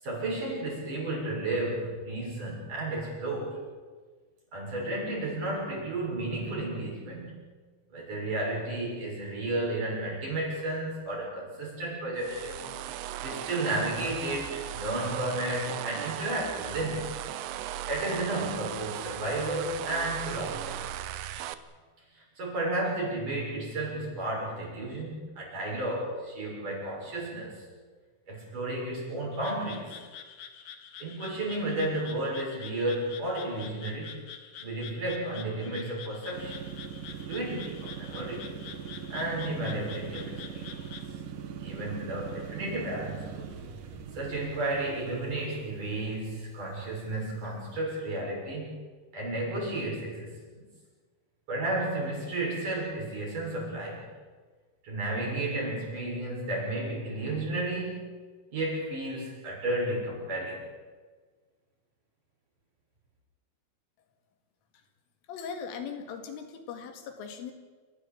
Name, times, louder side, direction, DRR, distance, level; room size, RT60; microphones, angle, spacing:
voice 1, 0.0-3.6 4.5-7.4 7.9-12.7 13.2-17.1 17.9-21.4 22.2-27.7 28.3-30.0 31.0-34.2 34.6-36.6 37.0-38.5 39.1-40.7 41.6-43.5 44.1-48.7 49.1-50.6 51.5-54.0 54.8-58.1 58.5-60.6, right 1 dB, 40° right, -3 dB, 8.5 m, -33 dB
sound 1, 12.2-21.5, right 12 dB, 80° right, 2.8 m, -37 dB
Frog, 29.3-41.1, left 8 dB, 60° left, 2.9 m, -47 dB
sound 2, 36.3-47.8, right 7 dB, 60° right, 2.6 m, -41 dB
voice 2, 65.3-67.5, left 6 dB, 85° left, 6 dB, 4.6 m, -39 dB
28.5 x 15.0 x 8.7 m, 1.5 s
omnidirectional pair, 5.6 m